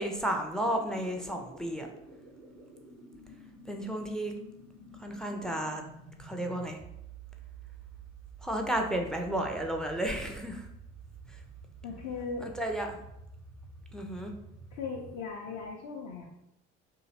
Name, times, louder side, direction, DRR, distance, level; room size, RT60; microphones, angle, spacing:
voice 1, 0.0-1.9 3.7-4.3 5.0-5.8 6.2-6.8 8.4-10.7 12.4-13.0 13.9-14.3, right 1 dB, ahead, 3 dB, 0.3 m, -32 dB
sound 1, 0.6-15.2, right 3 dB, 90° right, 0.5 m, -50 dB
voice 2, 11.8-12.5 14.7-16.4, left 4 dB, 50° left, -1 dB, 0.5 m, -38 dB
2.8 x 2.7 x 2.7 m, 0.82 s
figure-of-eight pair, 50°, 33 cm